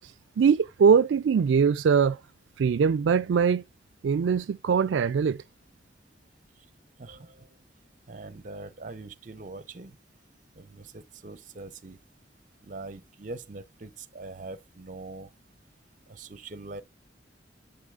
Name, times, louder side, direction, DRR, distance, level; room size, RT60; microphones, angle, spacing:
voice 1, 0.0-2.2 2.6-3.6 4.0-5.4, right 6 dB, 85° right, 0.3 m, -22 dB
voice 2, 7.0-7.5 8.1-10.0 10.6-12.0 12.6-15.3 16.1-16.8, right 3 dB, 45° right, 0.8 m, -42 dB
11.0 x 3.9 x 2.4 m
head